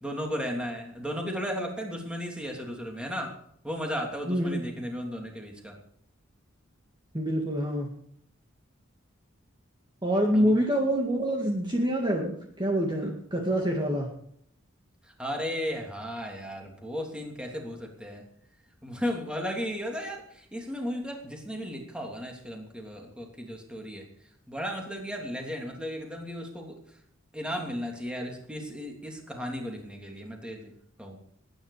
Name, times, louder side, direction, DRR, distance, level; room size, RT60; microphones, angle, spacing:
voice 1, 0.0-3.3 3.6-5.8 10.3-10.5 15.2-18.2 18.8-24.1 24.5-26.8 27.3-30.7 31.0-31.2, equal, 5° right, 1 dB, 3.0 m, -35 dB
voice 2, 7.1-7.9 10.0-14.1, equal, 20° right, 0 dB, 2.1 m, -26 dB
20.5 x 10.0 x 5.0 m, 0.66 s
head